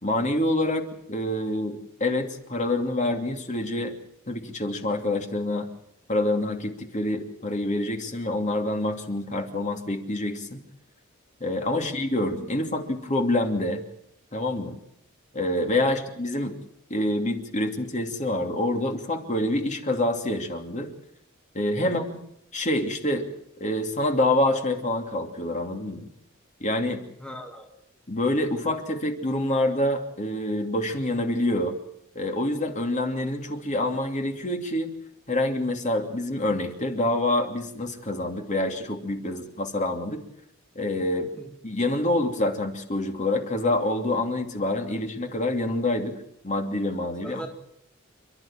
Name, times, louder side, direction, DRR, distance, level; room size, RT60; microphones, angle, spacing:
voice 1, 0.0-3.9 4.3-5.7 6.1-10.6 11.4-13.8 14.3-14.8 15.3-16.5 16.9-20.9 21.5-22.2 22.5-23.3 23.6-26.0 26.6-27.0 28.1-31.8 32.1-34.9 35.3-40.2 40.7-41.3 41.6-47.4, left 1 dB, 35° left, 4 dB, 2.8 m, -26 dB
voice 2, 11.6-11.9 15.8-16.1 21.8-22.1 27.2-27.7 41.4-41.5 44.9-45.0 47.2-47.5, equal, 5° left, 2 dB, 1.8 m, -39 dB
29.0 x 12.5 x 8.9 m, 0.76 s
head